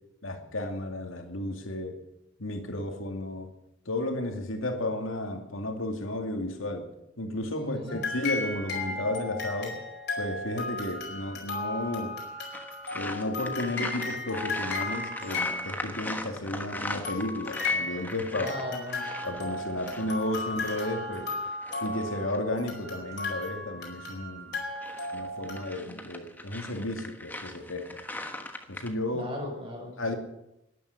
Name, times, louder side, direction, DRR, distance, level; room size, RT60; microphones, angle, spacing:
voice 1, 0.2-2.0 2.4-3.5 3.9-6.9 7.2-9.8 10.2-12.2 12.9-18.5 19.2-21.3 21.8-24.5 25.1-28.0 28.7-29.3 30.0-30.1, left 1 dB, 85° left, 5 dB, 2.4 m, -33 dB
voice 2, 7.5-8.0 18.3-19.1 29.1-29.9, left 1 dB, 25° right, 1 dB, 5.6 m, -36 dB
sound 1, 7.9-16.2 17.0-25.6, left 3 dB, 50° left, 4.5 m, -35 dB
sound 2, 12.5-22.4 24.5-28.9, left 1 dB, 10° left, 1.3 m, -40 dB
12.5 x 11.0 x 9.6 m, 0.84 s
head